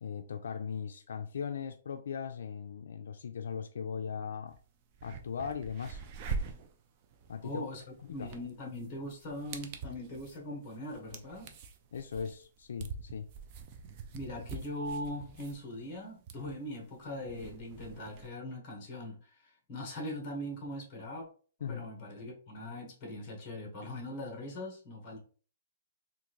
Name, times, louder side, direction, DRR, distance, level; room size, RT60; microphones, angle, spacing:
voice 1, 0.0-4.6 5.0-6.0 7.3-7.7 8.0-8.3 11.9-13.3 21.6-21.9, left 7 dB, 75° left, 0.3 m, -39 dB
sound 1, 4.5-4.6 4.9-18.3, right 5 dB, 30° right, 0.4 m, -44 dB
voice 2, 7.4-11.5 14.1-21.3 21.6-25.2, left 1 dB, 25° left, 1.3 m, -41 dB
3.7 x 2.5 x 3.0 m
hypercardioid pair, 170°, 0 cm